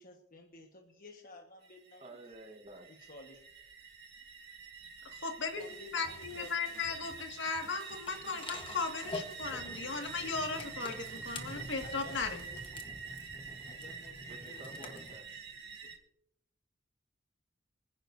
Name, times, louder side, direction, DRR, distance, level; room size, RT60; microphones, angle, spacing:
voice 1, 0.0-2.0 2.9-3.4 5.6-6.5 11.8-12.2 13.6-15.2 15.8-15.9, left 3 dB, 45° left, 1 dB, 1.4 m, -53 dB
sound 1, 1.6-16.0, right 5 dB, 60° right, 2.1 m, -47 dB
voice 2, 2.0-2.9 14.3-15.4, right 2 dB, 30° right, 1 dB, 1.3 m, -51 dB
voice 3, 5.1-12.4, left 4 dB, 65° left, 4 dB, 2.0 m, -37 dB
sound 2, 5.6-12.7, right 4 dB, 90° right, 2.9 m, -56 dB
sound 3, 8.1-15.1, left 2 dB, 25° left, 1.2 m, -47 dB
25.5 x 10.0 x 2.7 m, 0.77 s
head